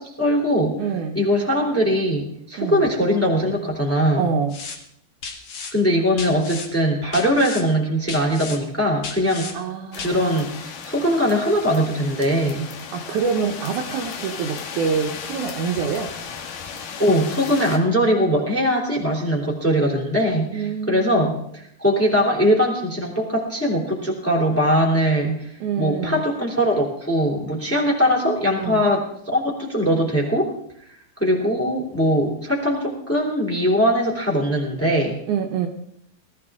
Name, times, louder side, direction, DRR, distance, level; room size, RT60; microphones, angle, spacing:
voice 1, 0.0-0.8 1.1-4.3 5.7-9.5 10.0-12.6 17.0-29.1 29.3-30.5 31.2-35.2, equal, 5° left, 0 dB, 2.5 m, -21 dB
voice 2, 0.8-1.2 2.6-2.8 4.2-4.6 9.5-10.2 12.9-16.1 20.5-21.4 25.6-26.2 28.6-28.8 35.3-35.7, right 6 dB, 70° right, 3 dB, 2.2 m, -26 dB
sound 1, 4.5-4.8 5.2-5.7 6.2-6.7 7.1-7.6 8.1-8.6 9.0-9.5 10.0-10.1, left 5 dB, 50° left, 2.4 m, -34 dB
sound 2, 9.9-17.8, left 6 dB, 80° left, 3.0 m, -35 dB
19.0 x 14.5 x 3.7 m, 0.73 s
omnidirectional pair, 3.9 m